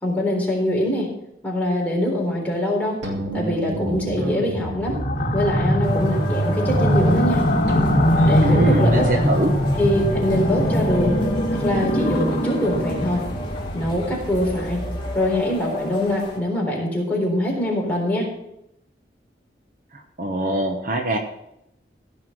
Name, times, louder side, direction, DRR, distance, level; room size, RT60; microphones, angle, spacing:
voice 1, 0.0-1.1 1.4-3.0 3.3-5.0 5.3-7.4 8.2-9.2 9.8-11.2 11.5-13.2 13.7-14.8 15.1-18.3, left 1 dB, 10° left, -3 dB, 3.9 m, -23 dB
sound 1, 3.0-8.7, equal, 85° right, 2.9 m, -30 dB
sound 2, 4.8-15.4, equal, 45° left, 1.9 m, -22 dB
sound 3, 5.8-16.4, left 1 dB, 30° left, 2.8 m, -33 dB
voice 2, 8.4-9.5 19.9-21.2, right 1 dB, 50° right, 4 dB, 1.1 m, -22 dB
15.5 x 5.9 x 6.1 m, 0.81 s
head